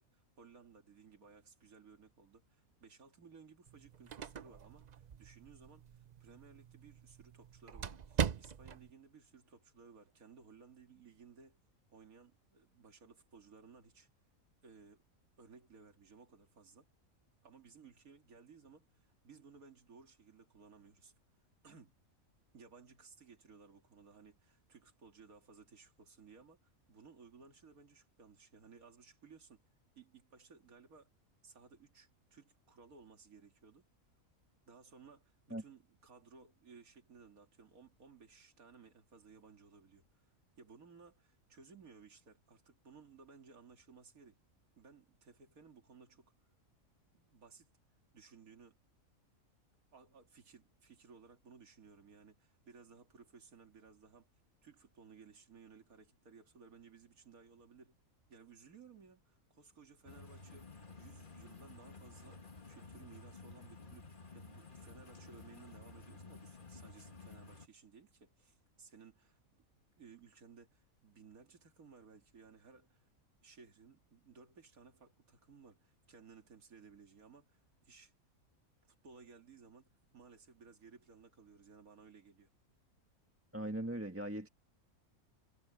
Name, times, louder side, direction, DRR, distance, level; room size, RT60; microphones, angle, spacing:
voice 1, 0.0-11.6 11.9-14.1 14.6-15.0 15.4-16.9 17.4-21.1 21.6-21.9 22.5-29.6 30.0-31.1 31.4-33.8 34.7-44.4 44.8-46.3 47.1-47.7 48.1-48.8 49.9-54.3 54.6-58.0 58.3-69.6 70.0-73.1 73.4-78.1 78.9-82.5, right 5 dB, 85° right, 2.6 m, -59 dB
sound 1, 3.7-8.9, right 7 dB, 45° right, 0.6 m, -41 dB
sound 2, 60.0-67.7, left 3 dB, 35° left, 2.1 m, -53 dB
voice 2, 83.5-84.5, right 1 dB, 10° right, 1.7 m, -39 dB
omnidirectional pair, 1.5 m